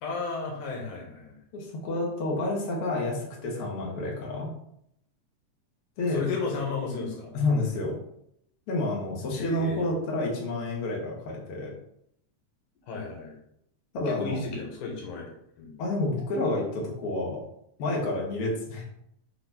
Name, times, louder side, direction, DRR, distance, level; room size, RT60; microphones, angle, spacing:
voice 1, 0.0-1.4 6.1-7.3 9.3-9.8 12.9-13.3 14.1-15.3 15.6-15.7, left 4 dB, 90° left, -1 dB, 3.0 m, -33 dB
voice 2, 1.5-4.5 6.0-6.2 7.3-8.0 8.7-11.7 13.9-14.4 15.8-17.4 17.8-18.8, left 2 dB, 55° left, -2 dB, 2.3 m, -29 dB
6.6 x 3.3 x 5.9 m, 0.74 s
omnidirectional pair, 3.4 m